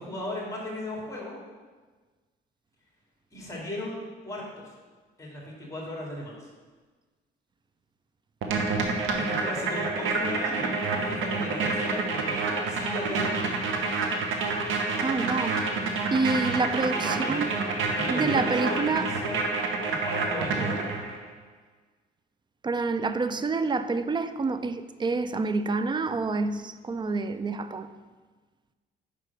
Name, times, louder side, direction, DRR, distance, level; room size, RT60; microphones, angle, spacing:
voice 1, 0.0-1.4 3.3-4.7 5.2-6.5 9.3-13.9 17.0-17.5 17.8-19.4 19.8-20.9, left 1 dB, 15° left, 2.3 m, -36 dB
sound 1, 8.4-21.2, right 3 dB, 80° right, 0.9 m, -28 dB
voice 2, 15.0-15.7 16.1-17.5 18.1-19.1 22.6-27.9, right 3 dB, 25° right, 0.4 m, -28 dB
5.1 x 4.9 x 5.7 m
cardioid pair, 90°, 20 cm